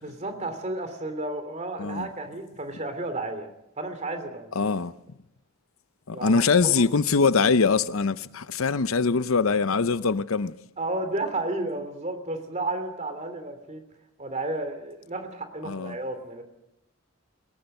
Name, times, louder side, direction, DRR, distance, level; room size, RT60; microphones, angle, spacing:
voice 1, 0.0-3.5 3.8-4.5 6.1-6.8 10.8-13.8 14.2-16.4, right 2 dB, 35° right, 3.0 m, -32 dB
voice 2, 4.6-4.9 6.1-10.6 15.7-16.0, left 4 dB, 80° left, 0.7 m, -23 dB
22.0 x 18.0 x 7.9 m
head